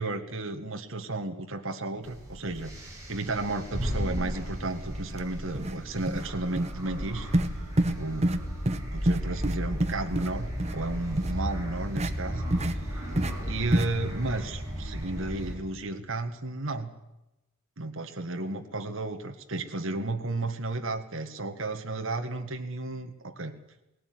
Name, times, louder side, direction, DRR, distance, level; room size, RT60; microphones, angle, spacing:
voice 1, 0.0-7.3 8.0-8.4 8.9-12.4 12.7-13.0 13.4-16.9 17.8-23.5, right 2 dB, 60° right, 5 dB, 1.8 m, -33 dB
sound 1, 2.0-15.6, equal, 15° right, 7.6 m, -35 dB
sound 2, 5.1-5.2 5.5-5.8 6.1-6.3 6.6-6.7 7.3-7.5 7.8-8.0 8.2-8.4 8.7-8.8 9.1-10.3 10.6-10.7 11.2-11.3 12.0-12.1 12.5-12.7 13.2-13.3 13.7-13.9, right 1 dB, 30° right, 1.1 m, -26 dB
18.5 x 18.0 x 9.6 m, 0.92 s
head